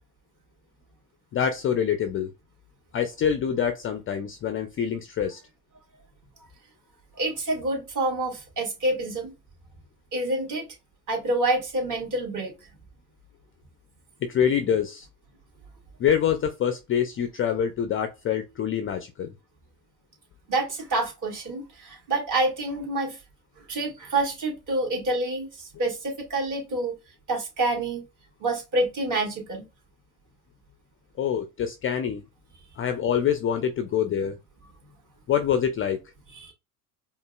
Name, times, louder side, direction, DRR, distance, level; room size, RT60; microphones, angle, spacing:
voice 1, 1.3-2.3 2.9-5.4 14.2-15.1 16.0-19.3 31.2-32.2 32.8-34.4 35.3-36.0, left 8 dB, 25° left, 0.5 m, -25 dB
voice 2, 7.2-9.3 10.1-10.6 11.1-12.5 20.5-23.2 23.7-27.0 27.3-28.0 28.4-29.6 36.4-36.5, right 2 dB, 40° right, 2.3 m, -27 dB
5.0 x 2.5 x 2.3 m
hypercardioid pair, 90°, 49 cm